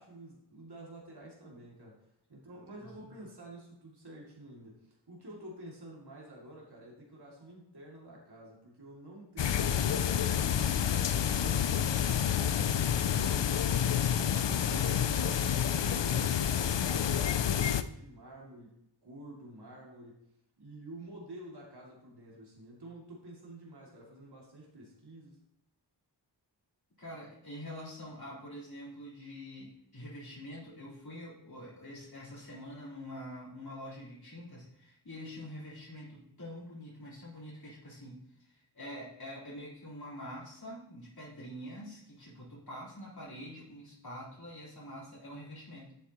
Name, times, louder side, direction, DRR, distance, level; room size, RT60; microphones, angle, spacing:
voice 1, 0.0-2.0 2.3-17.2 17.5-20.2 20.6-25.4, right 1 dB, 65° right, -3 dB, 2.5 m, -49 dB
sound 1, 9.4-17.8, left 9 dB, 80° left, 0.6 m, -29 dB
voice 2, 14.6-15.2 27.0-45.9, equal, 55° left, -7 dB, 3.9 m, -46 dB
11.0 x 8.1 x 3.0 m, 0.79 s
wide cardioid pair, 55°, 43 cm